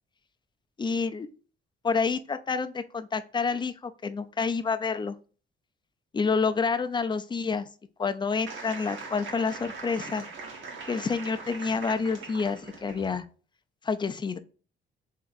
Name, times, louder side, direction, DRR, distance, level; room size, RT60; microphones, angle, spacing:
voice 1, 0.8-1.3 1.8-5.2 6.1-7.7 8.0-10.2 10.9-13.2 13.8-14.4, left 5 dB, 25° left, 10 dB, 0.5 m, -28 dB
sound 1, 8.5-13.2, right 4 dB, 75° right, 1.3 m, -41 dB
3.6 x 3.3 x 4.0 m, 0.38 s
cardioid pair, 90°, 20 cm